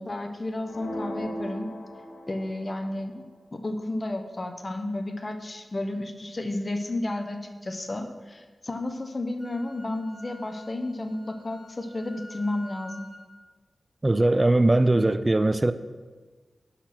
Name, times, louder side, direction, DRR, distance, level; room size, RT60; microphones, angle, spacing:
voice 1, 0.0-1.7 2.3-13.1, left 2 dB, 40° left, 0.9 m, -32 dB
sound 1, 0.7-2.7, equal, 75° left, 1.5 m, -37 dB
Wind instrument woodwind instrument, 9.4-13.2, left 1 dB, 10° left, 2.2 m, -49 dB
voice 2, 14.0-15.7, right 2 dB, 30° right, 0.4 m, -20 dB
9.9 x 4.2 x 6.1 m
cardioid pair, 60°, 0 cm